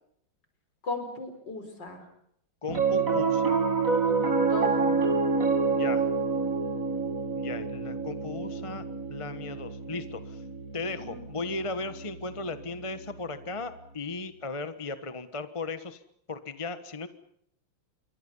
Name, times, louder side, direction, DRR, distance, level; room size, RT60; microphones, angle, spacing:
voice 1, 0.8-2.1 4.1-5.2 11.0-11.3, left 2 dB, 55° left, 7 dB, 5.6 m, -37 dB
voice 2, 2.6-3.6 5.7-6.1 7.4-8.8 9.1-10.4 10.7-16.0 16.3-17.1, left 3 dB, 20° left, 11 dB, 1.0 m, -36 dB
Piano, 2.7-13.2, right 4 dB, 40° right, 2.6 m, -28 dB
28.0 x 24.0 x 5.5 m, 0.70 s
omnidirectional pair, 2.3 m